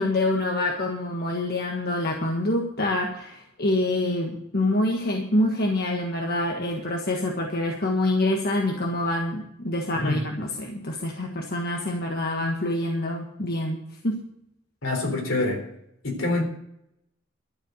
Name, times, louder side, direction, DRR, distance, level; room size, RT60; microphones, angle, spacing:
voice 1, 0.0-14.2, left 1 dB, 50° left, 1 dB, 1.6 m, -26 dB
voice 2, 14.8-15.6 16.0-16.4, left 2 dB, 75° left, 2 dB, 3.9 m, -25 dB
12.5 x 7.8 x 7.8 m, 0.78 s
head